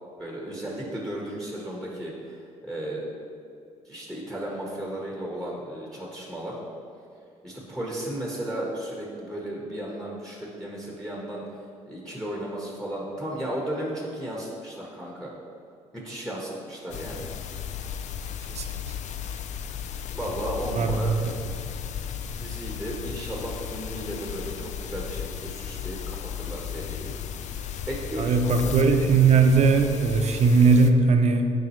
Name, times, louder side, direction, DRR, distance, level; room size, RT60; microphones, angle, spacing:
voice 1, 0.2-3.0 3.8-6.6 7.4-11.4 11.9-15.3 15.9-17.3 20.1-21.1 22.4-27.1 27.9-28.7, right 1 dB, 5° left, -3 dB, 1.5 m, -34 dB
sound 1, 16.9-30.9, left 8 dB, 60° left, 0.4 m, -35 dB
voice 2, 20.8-21.3 28.2-31.5, right 4 dB, 55° right, 6 dB, 0.7 m, -19 dB
9.2 x 5.3 x 3.2 m, 2.5 s
supercardioid pair, 75°, 13 cm